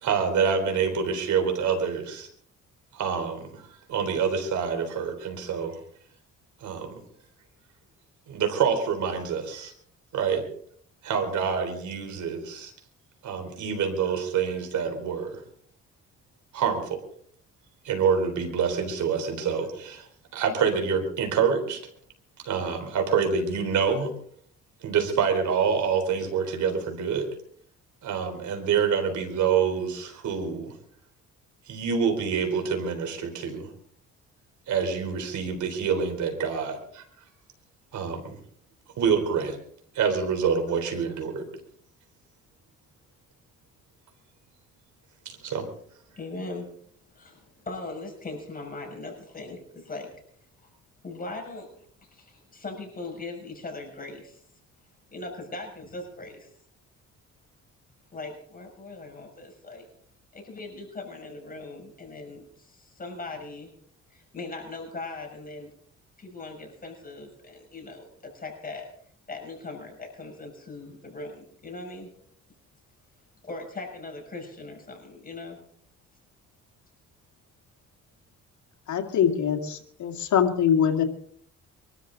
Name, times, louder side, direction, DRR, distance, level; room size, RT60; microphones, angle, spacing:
voice 1, 0.0-2.3 2.9-5.8 6.6-7.0 8.3-9.7 10.1-10.5 11.0-12.7 13.2-15.4 16.5-17.0 17.8-20.1 20.3-21.8 22.4-24.1 24.8-27.3 28.0-30.7 31.7-33.7 34.7-37.0 37.9-38.3 39.0-39.6 39.9-41.4 45.3-45.7, right 6 dB, 75° right, 4 dB, 4.0 m, -26 dB
voice 2, 46.2-46.7 47.1-50.1 51.0-51.7 52.0-54.4 55.1-56.5 58.1-59.9 60.3-63.7 64.1-65.7 66.2-68.9 69.3-72.1 73.4-75.6, left 2 dB, 30° left, 1 dB, 6.2 m, -39 dB
voice 3, 78.9-81.0, left 8 dB, 70° left, 4 dB, 2.4 m, -23 dB
24.0 x 13.0 x 4.0 m, 0.63 s
cardioid pair, 90°, 30 cm